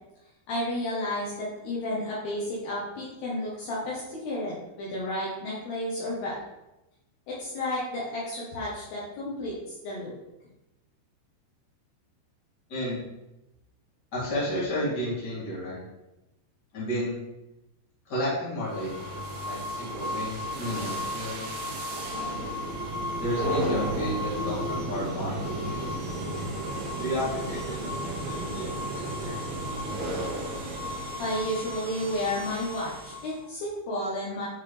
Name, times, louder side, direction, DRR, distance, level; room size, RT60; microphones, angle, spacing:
voice 1, 0.5-6.4 7.3-10.1 31.2-34.5, left 1 dB, 70° left, -6 dB, 2.8 m, -32 dB
voice 2, 14.1-15.8 16.7-17.2 18.1-22.4 23.2-26.0 27.0-29.4, equal, 30° left, -8 dB, 2.2 m, -33 dB
sound 1, 18.6-33.4, equal, 70° right, 1.6 m, -33 dB
9.9 x 4.0 x 3.3 m, 0.95 s
omnidirectional pair, 5.4 m